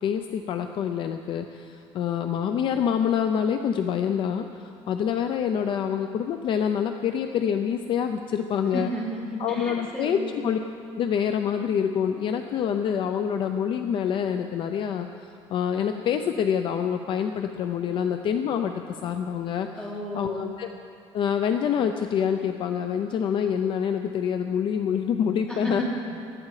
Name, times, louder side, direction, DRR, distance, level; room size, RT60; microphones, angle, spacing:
voice 1, 0.0-8.9 9.4-10.6 11.0-19.7 20.1-20.7 21.1-25.8, left 8 dB, 45° left, 7 dB, 0.6 m, -26 dB
voice 2, 8.7-10.5 19.8-20.5 25.5-25.8, equal, 5° left, -5 dB, 3.3 m, -33 dB
19.5 x 13.0 x 4.9 m, 2.5 s
cardioid pair, 165°, 12 cm